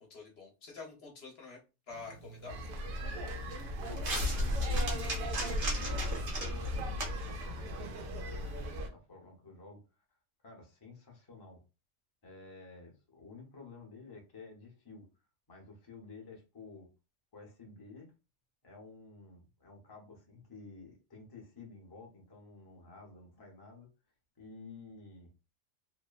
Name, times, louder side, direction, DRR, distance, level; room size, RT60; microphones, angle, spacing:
voice 1, 0.0-1.6 1.9-2.6, left 4 dB, 55° left, 0 dB, 0.9 m, -47 dB
sound 1, 1.9-8.8, right 2 dB, 45° right, 0.9 m, -42 dB
sound 2, 2.5-8.9, left 1 dB, 90° right, 1.1 m, -35 dB
voice 2, 3.9-10.0 10.4-11.6 12.2-15.1 15.5-16.9 17.3-18.1 18.6-23.9 24.4-25.3, left 3 dB, 30° left, 0 dB, 0.4 m, -52 dB
3.0 x 2.0 x 2.2 m, 0.30 s
omnidirectional pair, 1.4 m